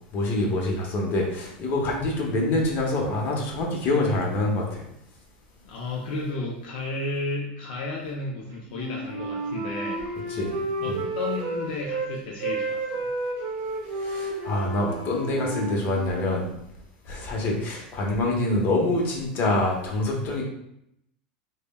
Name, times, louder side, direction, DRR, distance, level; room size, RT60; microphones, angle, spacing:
voice 1, 0.1-4.8 10.4-11.0 13.9-16.5 17.1-20.4, left 2 dB, 45° left, -1 dB, 0.8 m, -26 dB
voice 2, 5.6-10.1 10.8-13.1, left 2 dB, 70° left, -2 dB, 0.4 m, -33 dB
Wind instrument woodwind instrument, 8.7-12.1 12.4-16.3, right 2 dB, 60° right, 0.6 m, -31 dB
3.2 x 2.1 x 2.2 m, 0.77 s
supercardioid pair, 120°, 5 cm